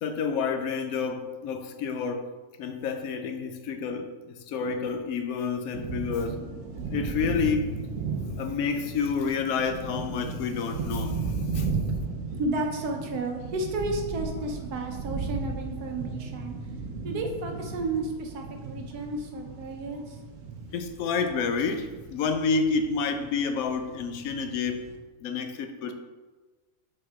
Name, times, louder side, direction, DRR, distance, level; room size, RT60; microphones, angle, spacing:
voice 1, 0.0-2.3 2.6-6.4 6.9-7.9 8.4-11.7 20.7-24.9 25.2-25.9, left 5 dB, 70° left, 6 dB, 1.0 m, -29 dB
sound 1, 5.7-25.0, right 4 dB, 60° right, 1.0 m, -35 dB
voice 2, 11.9-16.6 17.0-20.2, right 2 dB, 80° right, 3 dB, 1.4 m, -32 dB
6.4 x 4.8 x 3.6 m, 1.3 s
omnidirectional pair, 1.6 m